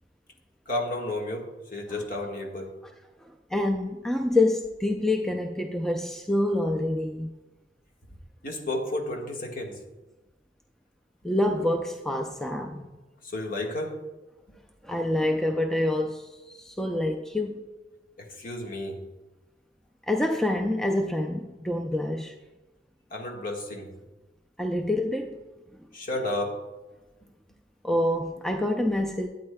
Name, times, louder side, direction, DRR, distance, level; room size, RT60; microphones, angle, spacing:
voice 1, 0.7-1.5 1.7-2.7 8.4-9.8 13.2-13.9 18.2-19.0 23.1-23.9 25.9-26.6, left 1 dB, 50° left, 1.5 m, -32 dB
voice 2, 3.5-7.3 11.2-12.9 14.8-17.6 20.1-22.3 24.6-25.4 27.8-29.3, left 1 dB, 5° left, 0.4 m, -27 dB
12.0 x 8.7 x 2.2 m
head